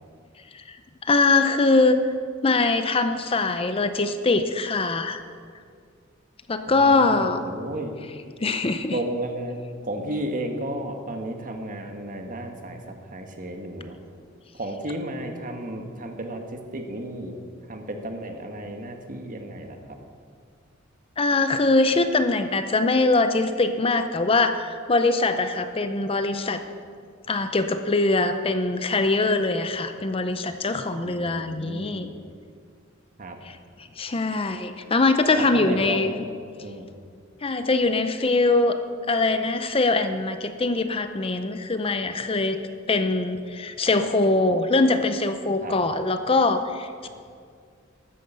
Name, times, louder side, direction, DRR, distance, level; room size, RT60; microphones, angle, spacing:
voice 1, 1.0-2.0 2.4-5.2 6.5-7.4 8.4-9.0 21.2-26.6 27.3-32.1 33.4-33.6 34.0-36.1 37.4-38.8 39.1-42.6 42.9-47.1, left 3 dB, 30° left, 9 dB, 0.6 m, -22 dB
voice 2, 6.7-7.9 8.9-9.6 9.8-14.0 14.5-17.4 17.7-20.0 31.0-32.2 33.2-33.4 35.3-36.1 36.6-36.9 45.6-45.7, right 1 dB, 40° right, 4 dB, 1.4 m, -33 dB
13.0 x 9.4 x 6.9 m, 2.2 s
head